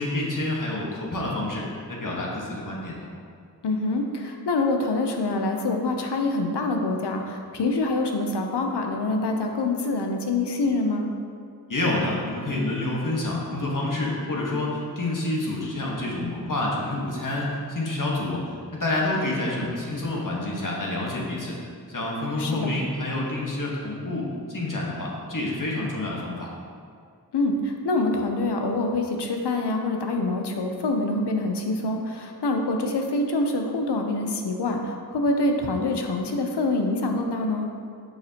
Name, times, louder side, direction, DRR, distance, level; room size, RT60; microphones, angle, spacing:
voice 1, 0.0-3.1 11.7-21.6 21.9-26.5, left 2 dB, 50° left, -4 dB, 1.5 m, -28 dB
voice 2, 3.6-11.1 22.4-22.7 27.3-37.7, left 2 dB, 85° left, 3 dB, 0.7 m, -25 dB
6.4 x 5.9 x 2.9 m, 2.2 s
cardioid pair, 40°, 40 cm